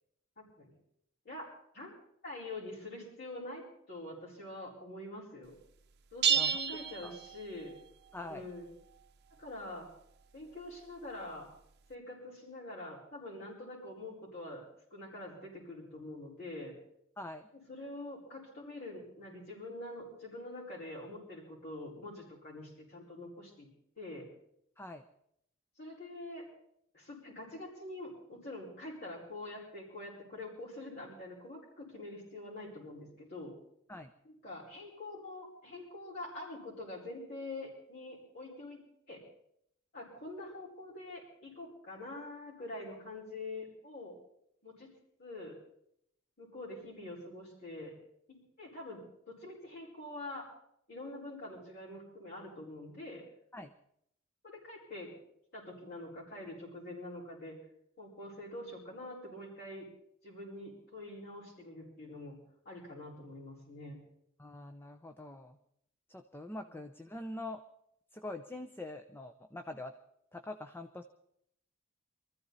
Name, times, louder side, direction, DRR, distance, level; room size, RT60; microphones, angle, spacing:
voice 1, 0.4-0.7 1.2-1.9 2.2-5.5 6.1-7.8 8.2-8.7 9.4-9.9 10.3-11.5 11.9-14.6 14.9-16.7 17.5-23.7 24.0-24.3 25.8-26.5 26.9-33.5 34.2-39.2 39.9-44.1 44.6-44.9 45.2-45.6 46.4-48.0 48.3-50.5 50.9-53.2 54.4-55.1 55.5-57.6 58.0-59.9 60.2-62.4 62.6-64.0 66.7-66.8, left 2 dB, 50° left, -6 dB, 5.1 m, -45 dB
sound 1, 6.2-7.8, right 7 dB, 55° right, 0.8 m, -31 dB
voice 2, 8.1-8.5 17.2-17.5 24.8-25.0 33.9-34.1 53.5-53.7 64.4-65.6 66.1-67.6 68.1-69.9 70.3-71.0, left 2 dB, 10° left, 8 dB, 0.6 m, -44 dB
24.0 x 14.5 x 4.1 m, 0.73 s
head